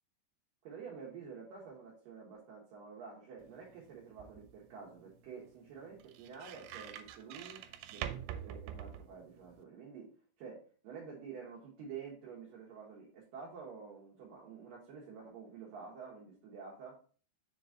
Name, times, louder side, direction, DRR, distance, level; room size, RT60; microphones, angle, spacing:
voice 1, 0.6-7.6 7.9-10.1 10.4-10.6 10.8-16.9, right 6 dB, 65° right, -3 dB, 2.4 m, -49 dB
sound 1, 3.4-9.6, right 10 dB, 90° right, 2.8 m, -47 dB
6.7 x 3.9 x 3.6 m, 0.42 s
omnidirectional pair, 5.0 m